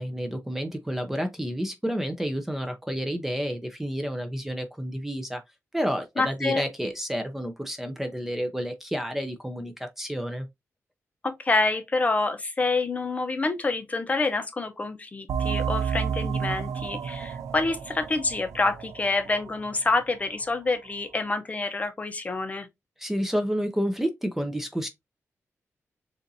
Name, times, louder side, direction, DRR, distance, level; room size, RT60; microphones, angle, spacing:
voice 1, 0.0-5.4 5.7-10.5 23.0-24.9, equal, 5° right, 0.6 m, -30 dB
voice 2, 6.2-6.6 11.2-22.7, left 3 dB, 30° left, 0.7 m, -27 dB
sound 1, 15.3-20.6, right 7 dB, 90° right, 0.5 m, -31 dB
6.8 x 2.5 x 2.6 m
wide cardioid pair, 150°, 5 cm